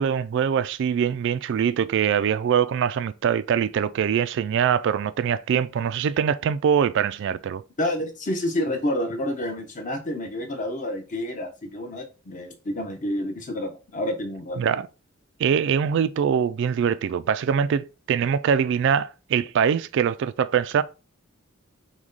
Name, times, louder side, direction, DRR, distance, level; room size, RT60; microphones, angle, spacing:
voice 1, 0.0-7.6 14.6-14.9 15.4-20.8, right 7 dB, 60° right, 0.3 m, -23 dB
voice 2, 7.8-14.6, left 1 dB, 40° left, 0.9 m, -29 dB
6.0 x 2.2 x 3.9 m
head